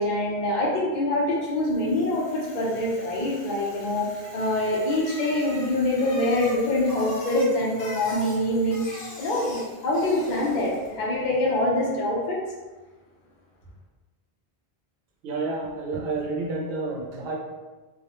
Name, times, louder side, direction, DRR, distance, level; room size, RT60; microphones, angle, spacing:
voice 1, 0.0-4.1 4.3-12.4, left 1 dB, 55° left, -4 dB, 0.7 m, -25 dB
Bicycle, 1.6-11.0, equal, 75° left, 0.9 m, -42 dB
voice 2, 15.2-17.3, right 3 dB, 75° right, -1 dB, 0.8 m, -30 dB
2.4 x 2.1 x 2.9 m, 1.2 s
omnidirectional pair, 1.0 m